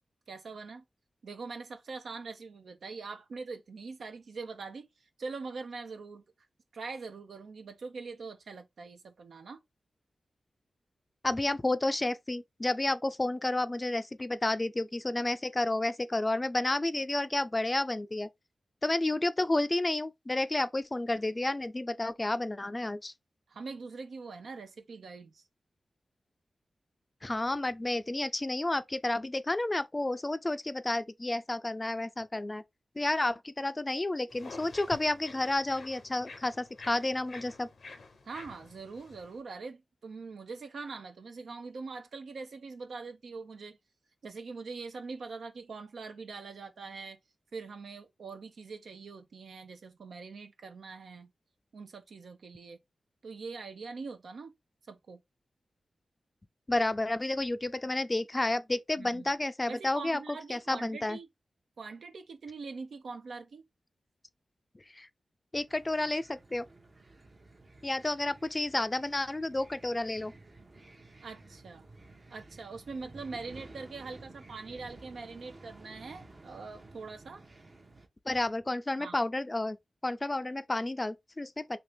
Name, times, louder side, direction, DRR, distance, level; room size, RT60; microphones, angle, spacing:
voice 1, 0.3-0.8 1.2-4.9 5.2-6.2 6.7-9.6 23.5-25.4 38.2-43.8 44.2-47.2 47.5-51.3 51.7-52.8 53.2-54.5 54.9-55.2 59.0-59.3 59.7-61.3 61.8-63.6 71.2-71.9 72.3-77.4 79.0-79.2, right 4 dB, 80° right, 0.6 m, -43 dB
voice 2, 11.2-18.3 18.8-23.1 27.2-32.6 33.0-37.7 56.7-60.2 60.5-61.2 64.9-65.1 65.5-66.7 67.8-70.3 78.3-79.8 80.0-81.8, left 2 dB, 30° left, 0.4 m, -31 dB
sound 1, 34.3-39.4, left 4 dB, 75° left, 0.7 m, -49 dB
sound 2, 65.7-78.1, right 2 dB, 50° right, 0.8 m, -53 dB
2.8 x 2.7 x 3.4 m
cardioid pair, 50°, 0 cm